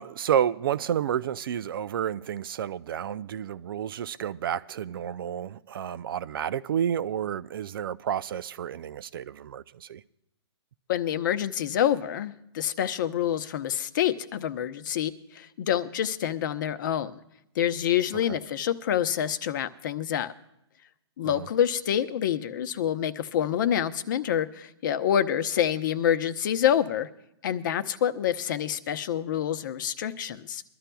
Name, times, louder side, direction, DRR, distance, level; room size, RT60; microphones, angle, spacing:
voice 1, 0.0-10.0 18.3-18.4 21.2-21.5, right 9 dB, 50° right, 0.4 m, -30 dB
voice 2, 10.9-17.2 17.6-20.3 21.2-27.1 27.4-30.6, left 10 dB, 45° left, 0.8 m, -27 dB
23.5 x 12.5 x 2.3 m
hypercardioid pair, 155°, 15 cm